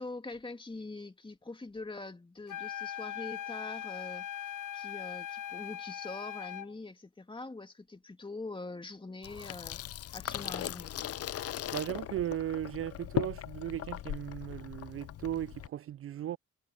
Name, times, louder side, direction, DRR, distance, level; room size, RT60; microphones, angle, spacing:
voice 1, 0.0-9.8 10.1-11.0, left 3 dB, 15° left, 2.7 m, -44 dB
sound 1, 2.5-6.7, left 10 dB, 85° left, 1.1 m, -40 dB
Water tap faucet / Sink (filling or washing), 9.2-15.7, left 12 dB, 55° left, 0.5 m, -39 dB
voice 2, 11.7-16.4, right 12 dB, 45° right, 0.4 m, -36 dB
cardioid pair, 90°, 30 cm